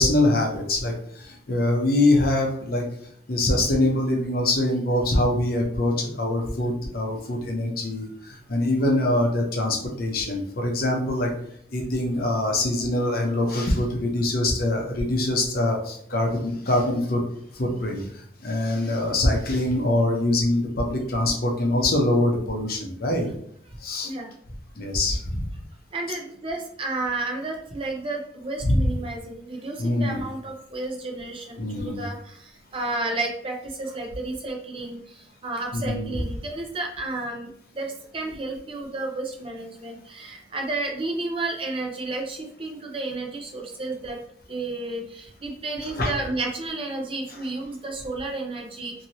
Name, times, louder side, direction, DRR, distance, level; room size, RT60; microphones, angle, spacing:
voice 1, 0.0-2.9 3.3-11.3 11.7-17.2 17.5-23.3 23.8-24.1 24.8-25.5 28.6-28.9 29.8-30.2 31.6-32.1 35.7-36.1 45.8-46.1, left 1 dB, 55° left, 1 dB, 0.7 m, -24 dB
voice 2, 25.9-32.4 32.7-35.0 35.4-37.5 37.7-44.2 44.5-48.9, right 2 dB, 30° right, 1 dB, 0.5 m, -31 dB
2.9 x 2.7 x 2.7 m, 0.68 s
head